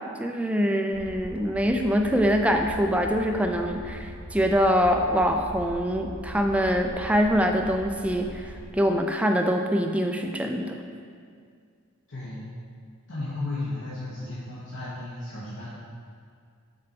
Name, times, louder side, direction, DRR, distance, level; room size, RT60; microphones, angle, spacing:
voice 1, 0.2-10.8, equal, 5° right, 4 dB, 0.3 m, -24 dB
sound 1, 0.9-8.7, equal, 50° right, 0.9 m, -41 dB
voice 2, 12.1-12.5 13.1-15.7, left 2 dB, 60° left, -10 dB, 1.2 m, -34 dB
6.7 x 3.9 x 4.5 m, 2.2 s
head